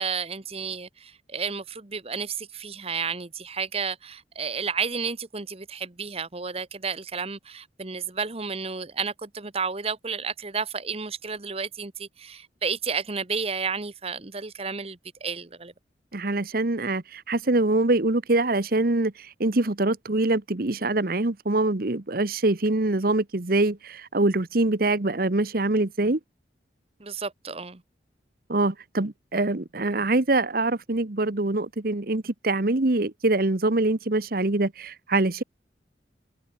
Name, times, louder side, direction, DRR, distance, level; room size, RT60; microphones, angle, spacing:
voice 1, 0.0-15.7 27.0-27.8, right 5 dB, 35° right, 1.2 m, -32 dB
voice 2, 16.1-26.2 28.5-35.4, right 2 dB, 55° right, 1.2 m, -24 dB
head